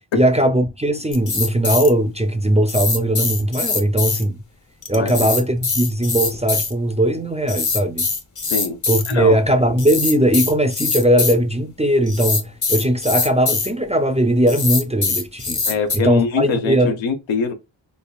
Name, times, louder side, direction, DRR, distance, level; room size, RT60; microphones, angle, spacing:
voice 1, 0.2-4.3 4.9-8.1 8.9-15.6 15.9-16.9, right 1 dB, 15° right, 0.4 m, -19 dB
sound 1, 1.1-1.9 2.7-4.2 4.8-6.7 7.5-9.1 9.8-11.3 12.1-13.7 14.5-16.0, left 4 dB, 40° left, 0.9 m, -22 dB
voice 2, 8.4-8.8 9.1-9.4 15.6-17.5, left 5 dB, 80° left, 0.8 m, -23 dB
5.3 x 2.3 x 2.3 m
wide cardioid pair, 95°, 46 cm